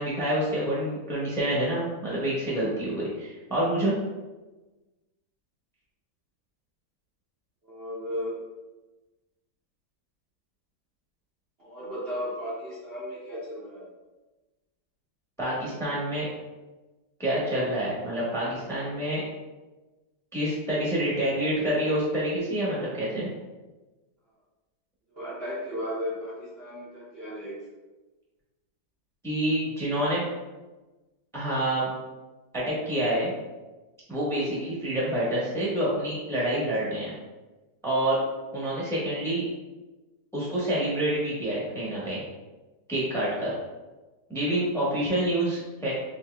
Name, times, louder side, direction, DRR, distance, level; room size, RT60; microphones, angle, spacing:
voice 1, 0.0-3.9 15.4-16.3 17.2-19.2 20.3-23.3 29.2-30.2 31.3-31.9 32.5-33.3 34.1-37.1 37.8-38.2 38.5-39.4 40.3-42.2 42.9-43.5 44.3-45.9, right 1 dB, ahead, -7 dB, 0.9 m, -27 dB
voice 2, 7.6-8.4 11.6-13.8 21.9-22.0 25.1-27.5, equal, 45° right, -9 dB, 0.9 m, -35 dB
5.3 x 2.9 x 2.2 m, 1.2 s
omnidirectional pair, 1.8 m